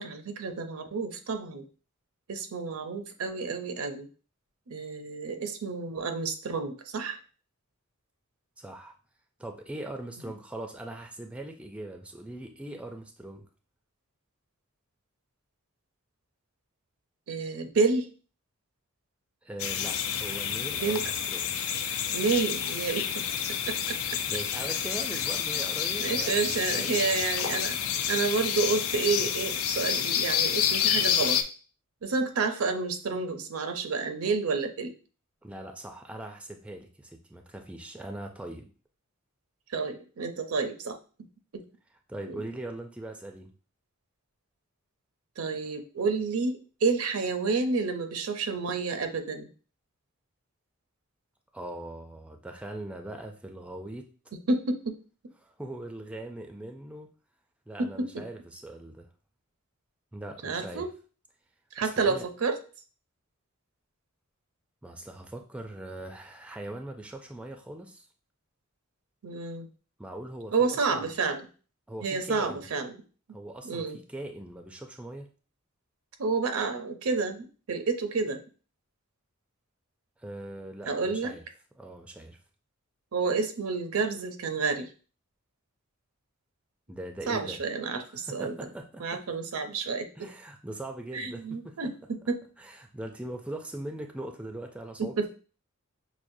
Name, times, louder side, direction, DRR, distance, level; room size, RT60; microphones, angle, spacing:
voice 1, 0.0-1.6 2.3-4.1 4.7-7.2 17.3-18.1 20.7-21.0 22.1-23.2 23.5-24.0 26.0-27.8 28.1-31.4 32.0-34.9 39.7-41.0 41.5-41.6 42.3-42.4 45.4-49.5 54.5-55.0 57.8-58.2 60.4-60.9 61.7-62.6 69.2-69.7 70.5-71.5 72.0-72.9 73.6-74.0 76.2-78.4 80.9-81.3 83.1-84.9 87.3-88.5 89.0-90.1 91.1-92.4 95.0-95.3, right 4 dB, 80° right, 7 dB, 0.5 m, -30 dB
voice 2, 8.6-8.9 9.4-13.5 19.4-21.6 24.3-27.2 35.4-38.7 42.1-43.5 51.5-54.1 55.4-57.1 57.7-59.1 60.1-60.9 61.8-62.3 64.8-68.1 70.0-71.1 71.9-72.7 73.3-75.3 80.2-81.4 81.8-82.4 86.9-87.6 88.0-89.2 90.2-91.8 92.6-95.3, right 1 dB, 5° right, 4 dB, 0.3 m, -41 dB
sound 1, 19.6-31.4, left 8 dB, 80° left, 0.4 m, -29 dB
6.0 x 2.1 x 2.6 m, 0.37 s
head